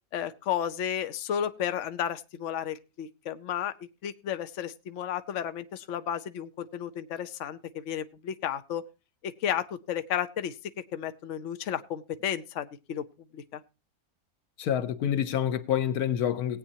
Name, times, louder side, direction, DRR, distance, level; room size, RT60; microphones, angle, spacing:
voice 1, 0.1-3.7 4.0-8.8 9.2-10.5 10.9-13.0 13.3-13.6, left 9 dB, 60° left, 1.1 m, -33 dB
voice 2, 14.6-16.6, left 9 dB, 85° left, 1.3 m, -27 dB
18.5 x 8.6 x 2.8 m
omnidirectional pair, 1.6 m